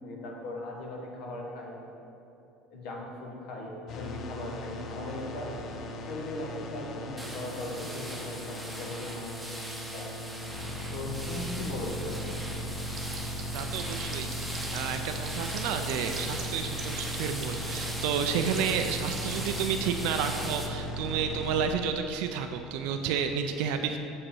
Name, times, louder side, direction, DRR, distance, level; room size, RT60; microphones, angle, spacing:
voice 1, 0.0-1.8 2.7-5.6 6.1-9.3 9.9-10.1 10.9-12.3, left 2 dB, 70° left, -1 dB, 1.2 m, -38 dB
sound 1, 3.9-21.7, equal, 50° left, 0.5 m, -37 dB
sound 2, 7.2-20.7, right 1 dB, 5° right, 0.9 m, -40 dB
sound 3, 13.0-15.3 15.5-19.5, right 9 dB, 50° right, 1.0 m, -41 dB
voice 2, 13.5-24.0, right 7 dB, 75° right, 6 dB, 0.4 m, -31 dB
7.3 x 5.4 x 4.2 m, 2.8 s
supercardioid pair, 120°, 0 cm